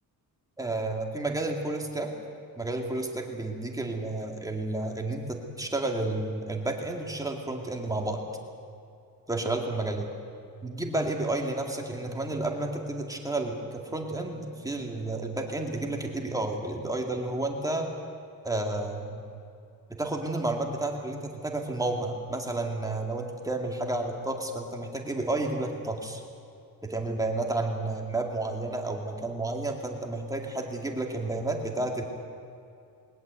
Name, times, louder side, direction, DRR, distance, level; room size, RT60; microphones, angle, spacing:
voice 1, 0.6-2.1 2.6-8.2 9.3-10.1 10.6-17.9 18.4-19.2 20.0-26.2 26.8-32.0, right 2 dB, 10° right, 1 dB, 2.3 m, -31 dB
20.5 x 19.5 x 8.2 m, 2.5 s
cardioid pair, 170°, 36 cm